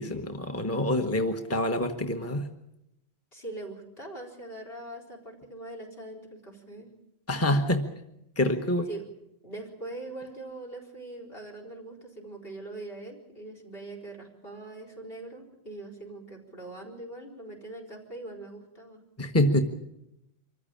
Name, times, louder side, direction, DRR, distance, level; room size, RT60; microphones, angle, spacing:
voice 1, 0.0-2.5 7.3-7.9 8.4-8.9 19.2-19.6, left 1 dB, 15° left, 5 dB, 1.2 m, -26 dB
voice 2, 3.3-6.9 8.9-9.0 9.4-19.0, right 2 dB, 65° left, 2 dB, 4.6 m, -42 dB
25.0 x 14.5 x 8.7 m, 0.87 s
omnidirectional pair, 1.1 m